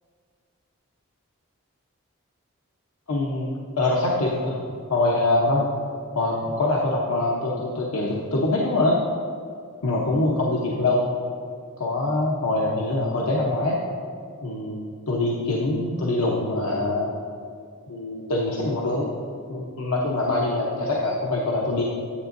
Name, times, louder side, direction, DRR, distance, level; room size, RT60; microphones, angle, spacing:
voice 1, 3.1-4.6 4.9-5.7 6.1-9.0 9.8-11.1 11.8-13.8 14.4-17.1 17.9-19.1 19.5-21.8, left 2 dB, 90° left, -4 dB, 0.9 m, -24 dB
9.8 x 8.4 x 2.6 m, 2.3 s
head